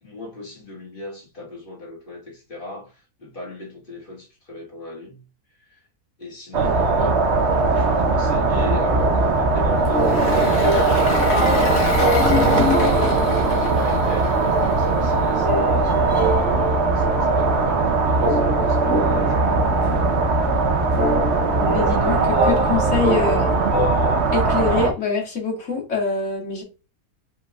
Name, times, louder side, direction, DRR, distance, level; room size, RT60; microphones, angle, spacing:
voice 1, 0.0-5.2 5.6-5.8 6.2-7.2 7.5-12.0 12.8-20.2, left 2 dB, 35° left, 1.7 m, -37 dB
sound 1, 6.5-24.9, right 3 dB, 55° right, 0.9 m, -20 dB
sound 2, 8.4-24.2, right 1 dB, 35° right, 1.6 m, -26 dB
Engine, 9.9-15.1, left 4 dB, 85° left, 1.6 m, -25 dB
voice 2, 21.5-23.5 24.3-26.6, left 4 dB, 50° left, 1.8 m, -25 dB
5.3 x 3.8 x 2.2 m
omnidirectional pair, 1.6 m